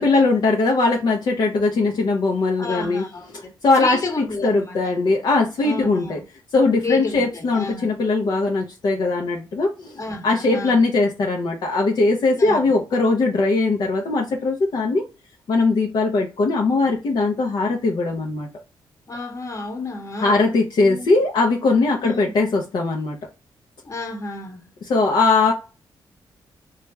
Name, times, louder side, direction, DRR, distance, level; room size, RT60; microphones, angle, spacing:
voice 1, 0.0-3.0 3.3-6.2 6.5-15.0 15.5-18.5 20.2-23.2 24.8-25.5, left 3 dB, 60° left, 0.6 m, -20 dB
voice 2, 2.6-3.5 3.8-5.1 5.6-6.2 6.8-7.9 9.9-10.8 12.3-12.7 19.1-20.5 20.8-21.1 22.0-22.3 23.8-24.6, left 3 dB, 40° left, 1.0 m, -31 dB
3.3 x 2.4 x 3.1 m
cardioid pair, 95°, 8 cm